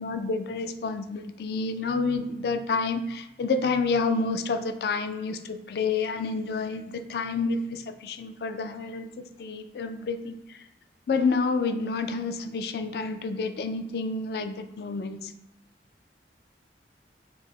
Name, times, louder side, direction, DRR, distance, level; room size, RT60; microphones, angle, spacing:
voice 1, 0.0-9.1 9.4-10.4 11.1-15.2, left 4 dB, 60° left, 9 dB, 0.3 m, -29 dB
4.5 x 2.0 x 4.1 m, 0.88 s
head